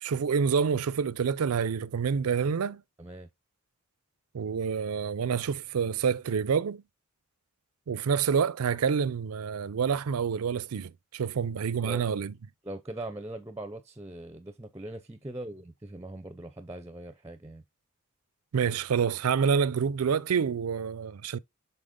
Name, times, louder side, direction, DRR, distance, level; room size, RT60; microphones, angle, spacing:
voice 1, 0.0-2.8 4.3-6.8 7.9-12.3 18.5-21.4, right 6 dB, 80° right, 0.4 m, -27 dB
voice 2, 3.0-3.3 11.8-12.1 12.6-17.6, right 1 dB, 15° right, 0.5 m, -41 dB
6.6 x 4.1 x 3.7 m
head